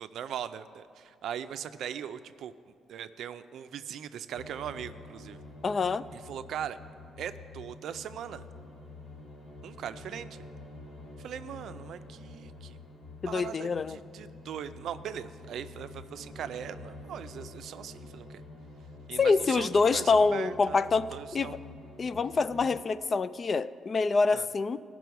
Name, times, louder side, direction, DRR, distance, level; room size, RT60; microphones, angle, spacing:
voice 1, 0.0-2.5 2.9-5.4 6.1-6.8 7.2-8.4 9.6-10.3 11.2-12.8 13.3-18.4 19.1-21.6 24.3-24.5, right 9 dB, 75° right, 11 dB, 0.4 m, -40 dB
sound 1, 4.3-22.8, left 2 dB, 55° left, 3.0 m, -48 dB
voice 2, 5.6-6.0 13.2-14.0 19.2-21.6 22.0-24.8, left 4 dB, 40° left, 15 dB, 0.3 m, -26 dB
17.5 x 6.1 x 4.6 m, 2.2 s
cardioid pair, 90°, 0 cm